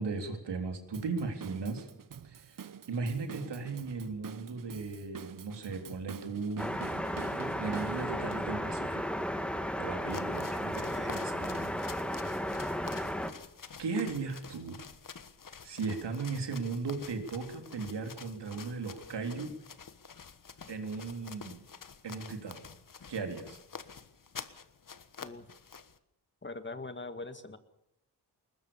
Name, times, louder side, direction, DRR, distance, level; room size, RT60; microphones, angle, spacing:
voice 1, 0.0-1.9 2.2-2.6 2.9-6.7 7.0-9.0 9.8-11.8 13.8-14.8 15.6-19.5 20.7-21.6 22.0-22.6 23.1-23.6, right 4 dB, 85° right, 5 dB, 3.6 m, -37 dB
Drum kit / Drum, 0.9-8.4, right 7 dB, 50° right, 0.9 m, -46 dB
sound 1, 6.6-13.3, equal, 5° left, 1.9 m, -34 dB
sound 2, 10.0-26.0, left 6 dB, 50° left, 1.4 m, -48 dB
voice 2, 10.9-11.2 25.2-25.4 26.4-27.6, left 3 dB, 25° left, 10 dB, 1.9 m, -43 dB
21.0 x 20.5 x 7.1 m, 0.80 s
wide cardioid pair, 90°, 41 cm